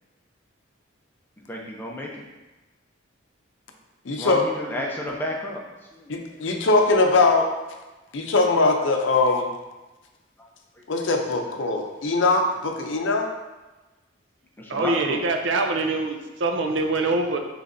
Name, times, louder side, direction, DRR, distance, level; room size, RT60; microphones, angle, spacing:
voice 1, 1.5-2.1 4.2-5.6 14.7-15.2, left 1 dB, 10° left, -2 dB, 0.5 m, -30 dB
voice 2, 4.1-4.5 6.1-7.5 8.1-9.5 10.9-13.3, left 3 dB, 75° left, 3 dB, 0.6 m, -21 dB
voice 3, 14.7-17.4, right 3 dB, 70° right, 4 dB, 0.5 m, -24 dB
6.3 x 3.2 x 2.6 m, 1.1 s
head